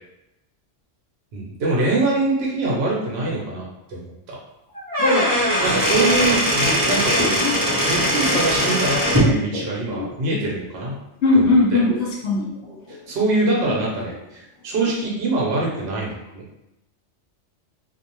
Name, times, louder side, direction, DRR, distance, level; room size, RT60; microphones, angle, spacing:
voice 1, 1.3-4.4 5.6-7.4 7.9-10.9 11.3-11.8 12.9-16.4, right 2 dB, 60° right, -3 dB, 0.9 m, -24 dB
Squeak / Wood, 4.7-9.3, equal, 25° right, 0.6 m, -20 dB
sound 1, 6.8-11.3 11.5-15.0 15.4-15.5, left 4 dB, 35° left, 0.6 m, -32 dB
voice 2, 11.2-12.5, left 2 dB, 65° left, -5 dB, 0.8 m, -18 dB
2.5 x 2.0 x 2.9 m, 0.87 s
omnidirectional pair, 1.2 m